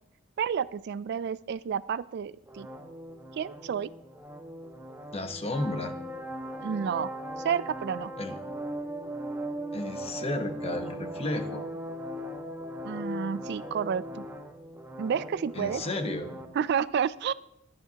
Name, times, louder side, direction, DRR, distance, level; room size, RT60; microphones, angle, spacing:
voice 1, 0.4-2.7 3.3-3.9 6.6-8.1 12.8-14.2 15.0-15.8 16.6-17.3, right 7 dB, 55° right, 18 dB, 0.3 m, -30 dB
sound 1, 2.5-16.5, right 1 dB, 10° right, 1.0 m, -39 dB
voice 2, 5.1-5.9 8.2-8.4 9.7-11.7 15.5-16.3, left 2 dB, 30° left, 7 dB, 1.1 m, -33 dB
22.0 x 9.6 x 2.9 m, 0.78 s
head